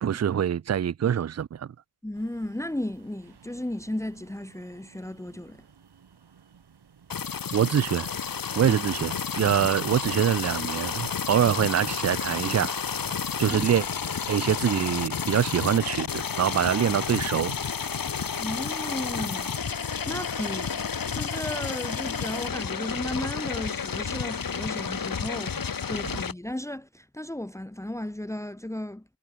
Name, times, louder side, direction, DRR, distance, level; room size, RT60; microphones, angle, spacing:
voice 1, 0.0-1.7 7.5-8.1 8.6-12.7 13.4-13.9 14.3-17.6, right 9 dB, 40° right, 0.5 m, -24 dB
voice 2, 2.0-5.6 8.7-8.8 13.4-13.6 18.4-19.5 20.1-20.8 21.1-29.0, left 1 dB, 5° left, 1.4 m, -34 dB
sound 1, 2.1-21.6, right 7 dB, 70° right, 4.7 m, -55 dB
sound 2, 7.1-26.3, left 6 dB, 55° left, 2.2 m, -31 dB
wide cardioid pair, 105°, 40 cm